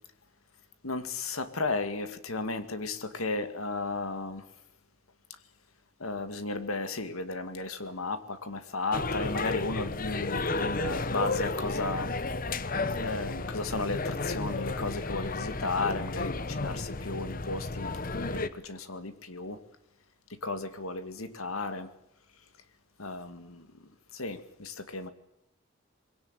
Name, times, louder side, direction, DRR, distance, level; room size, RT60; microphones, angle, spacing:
voice 1, 0.8-4.5 5.3-5.4 6.0-12.1 13.0-19.6 20.3-21.9 23.0-25.1, left 3 dB, 80° left, 10 dB, 2.2 m, -34 dB
sound 1, 8.9-18.5, left 3 dB, 40° left, 1.0 m, -32 dB
22.5 x 17.0 x 8.9 m, 0.83 s
head